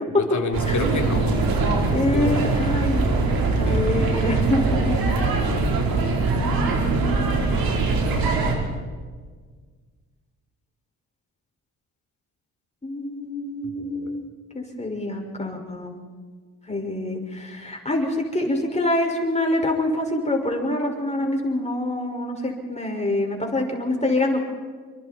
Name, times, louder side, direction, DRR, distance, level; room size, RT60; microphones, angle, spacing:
voice 1, 0.2-1.4 2.1-2.4 3.7-4.1 4.8-5.6 13.6-14.2, left 4 dB, 55° left, 3 dB, 3.4 m, -31 dB
sound 1, 0.5-8.6, right 3 dB, 75° right, 4.5 m, -22 dB
voice 2, 1.9-3.1 3.6-4.6 4.9-5.0 6.3-7.2 12.8-14.3 14.5-16.0 16.7-24.4, left 1 dB, 20° left, 1 dB, 6.0 m, -25 dB
28.5 x 23.5 x 4.5 m, 1.5 s
supercardioid pair, 60°, 36 cm